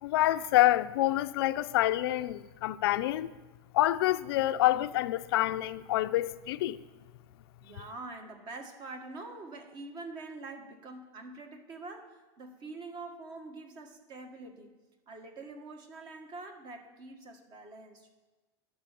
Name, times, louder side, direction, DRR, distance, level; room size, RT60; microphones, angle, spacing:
voice 1, 0.0-3.3 3.7-6.8, left 15 dB, 80° left, 0.6 m, -27 dB
voice 2, 7.6-14.7 15.1-18.1, right 3 dB, 35° right, 1.8 m, -45 dB
12.0 x 6.9 x 9.1 m
supercardioid pair, 150°, 13 cm